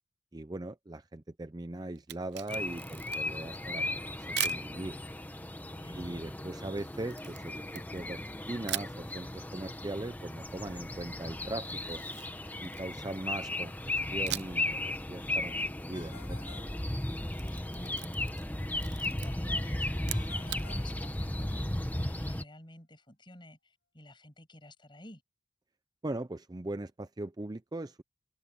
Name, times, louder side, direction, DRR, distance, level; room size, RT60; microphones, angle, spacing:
voice 1, 0.3-5.0 6.0-8.2 8.5-12.0 12.6-16.4 26.0-28.0, right 2 dB, 20° right, 0.5 m, -40 dB
Camera, 2.0-3.4 4.4-4.7 7.1-8.3 8.7-9.0 11.6-13.2 14.3-14.7 15.0-15.1 17.1-18.5 18.8-19.3 20.0-20.7, right 13 dB, 60° right, 0.6 m, -39 dB
sound 1, 2.5-22.4, left 1 dB, 10° left, 1.2 m, -36 dB
voice 2, 5.7-6.1 17.5-18.0 18.7-25.2, left 1 dB, 25° left, 7.4 m, -51 dB
Ringtone, 15.9-17.6 20.1-21.8, left 5 dB, 55° left, 5.6 m, -55 dB
head